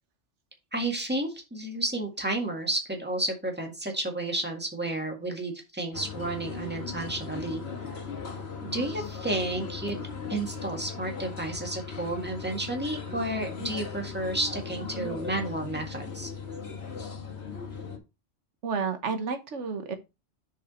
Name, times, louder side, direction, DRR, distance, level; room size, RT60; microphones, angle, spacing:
voice 1, 0.7-7.6 8.6-10.0 10.3-16.3, right 2 dB, 10° right, 1.8 m, -31 dB
sound 1, 5.9-18.0, left 5 dB, 60° left, 1.7 m, -38 dB
voice 2, 18.6-20.0, right 5 dB, 90° right, 1.4 m, -31 dB
6.7 x 5.0 x 4.2 m
omnidirectional pair, 1.2 m